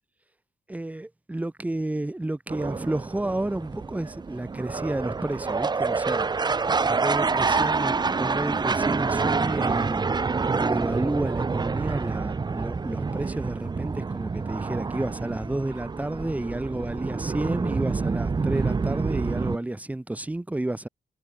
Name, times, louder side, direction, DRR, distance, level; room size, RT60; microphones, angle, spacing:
voice 1, 0.7-6.5 6.9-10.0 10.5-20.9, right 1 dB, 10° right, 2.6 m, -31 dB
sound 1, 2.5-19.6, right 4 dB, 30° right, 3.4 m, -27 dB
wide cardioid pair, 140°, 14 cm